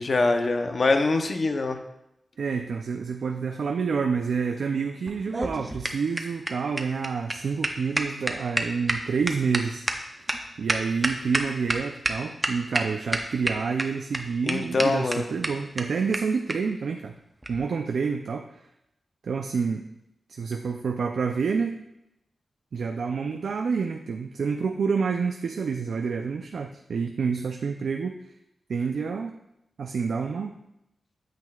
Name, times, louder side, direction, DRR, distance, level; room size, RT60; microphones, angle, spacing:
voice 1, 0.1-1.8 14.4-15.2, left 3 dB, 50° left, 6 dB, 0.7 m, -23 dB
voice 2, 2.4-9.8 10.6-17.2 17.5-18.5 19.2-19.9 20.3-21.8 22.7-28.2 28.7-29.3 29.8-30.6, right 5 dB, 85° right, 4 dB, 0.4 m, -28 dB
sound 1, 5.1-11.8 12.1-12.2 12.4-12.8 13.1-13.8 14.1-14.2 14.5-14.6 14.8-14.9 15.1-15.2 15.4-15.5 15.8-15.9 16.1-16.2 16.5-16.6 17.4-17.6, right 1 dB, 15° right, 0.7 m, -27 dB
9.1 x 7.6 x 2.4 m, 0.84 s
wide cardioid pair, 115°, 0 cm